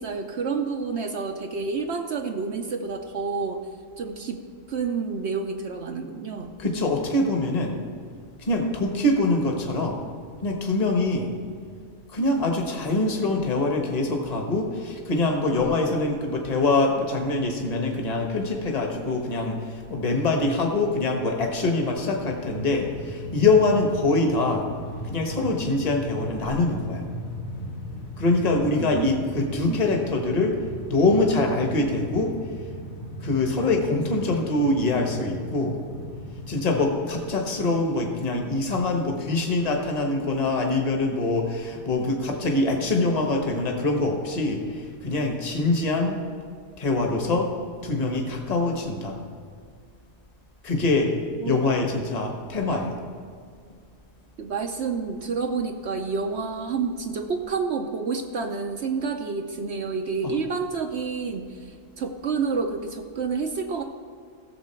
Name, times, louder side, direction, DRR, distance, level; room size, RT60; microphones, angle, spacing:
voice 1, 0.0-3.6 4.0-4.4 4.7-6.5 28.8-29.8 51.4-51.6 54.4-61.7 62.0-63.8, right 5 dB, 60° right, 4 dB, 0.9 m, -29 dB
voice 2, 6.6-7.8 8.4-10.0 10.4-11.3 12.1-24.7 25.0-27.0 28.2-30.6 30.9-32.3 33.2-35.8 36.5-46.2 46.8-47.5 47.8-49.2 50.6-51.1 51.4-53.0, left 2 dB, 30° left, 2 dB, 1.3 m, -24 dB
Train, 21.7-36.8, equal, 75° left, 2.0 m, -37 dB
16.0 x 7.1 x 4.4 m, 2.1 s
omnidirectional pair, 1.4 m